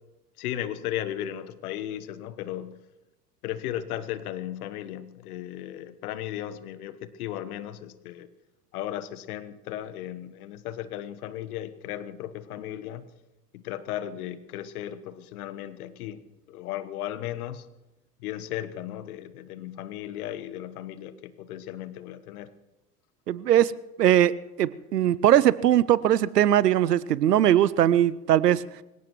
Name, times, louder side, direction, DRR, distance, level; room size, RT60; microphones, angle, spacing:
voice 1, 0.4-2.8 3.4-8.3 8.7-13.1 13.5-16.2 16.5-17.7 18.2-22.5, left 12 dB, 70° left, 14 dB, 1.3 m, -35 dB
voice 2, 23.3-23.7 24.0-28.6, right 11 dB, 90° right, 20 dB, 0.6 m, -20 dB
25.0 x 17.0 x 3.1 m, 1.0 s
hypercardioid pair, 80°, 47 cm